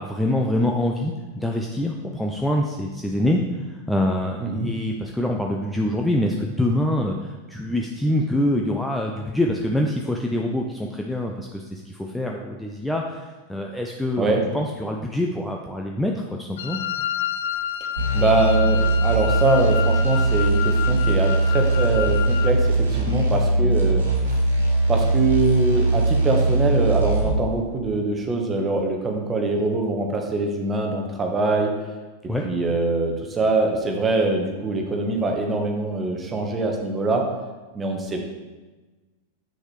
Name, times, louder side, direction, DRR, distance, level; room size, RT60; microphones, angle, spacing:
voice 1, 0.0-3.4 3.7-16.8 32.3-32.5, left 1 dB, 5° left, 0 dB, 0.6 m, -25 dB
Wind instrument woodwind instrument, 16.6-22.6, left 10 dB, 60° left, 0.4 m, -30 dB
sound 1, 18.0-27.4, right 2 dB, 75° right, 1.5 m, -20 dB
voice 2, 18.1-24.4 24.9-31.7 32.4-37.2 37.7-38.2, right 3 dB, 20° right, 2 dB, 1.2 m, -23 dB
7.6 x 6.2 x 3.2 m, 1.2 s
figure-of-eight pair, 90°, 0 cm